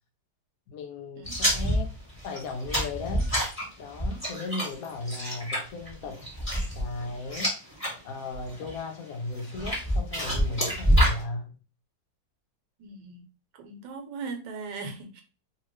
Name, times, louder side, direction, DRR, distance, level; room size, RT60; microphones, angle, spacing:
voice 1, 0.7-1.9 2.2-3.3 3.8-6.2 6.8-7.5 8.0-11.5, left 3 dB, 70° left, 0.9 m, -36 dB
sound 1, 1.3-7.9 8.3-8.8 9.4-11.2, equal, 5° left, 1.4 m, -27 dB
voice 2, 12.8-13.3 13.6-15.2, right 4 dB, 80° right, 1.4 m, -39 dB
2.9 x 2.8 x 3.1 m
omnidirectional pair, 1.9 m